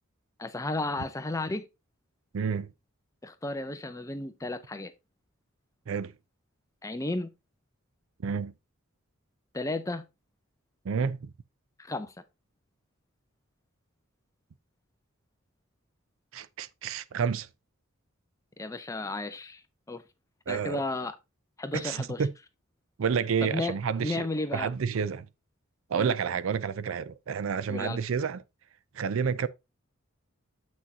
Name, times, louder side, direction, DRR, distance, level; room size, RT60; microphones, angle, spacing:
voice 1, 0.4-1.7 3.2-4.9 6.8-7.3 9.5-10.0 11.8-12.1 18.6-19.6 19.9-20.0 20.5-21.1 21.6-22.2 23.4-23.7 24.0-24.7 26.0-26.2 27.7-28.0, left 2 dB, 15° left, 0.6 m, -33 dB
voice 2, 2.3-2.7 5.9-6.1 8.2-8.5 10.8-11.3 16.3-17.5 20.5-20.8 21.7-22.3 23.0-24.3 24.5-25.3 25.9-28.4 28.9-29.5, right 6 dB, 70° right, 0.4 m, -29 dB
7.5 x 6.1 x 2.7 m
head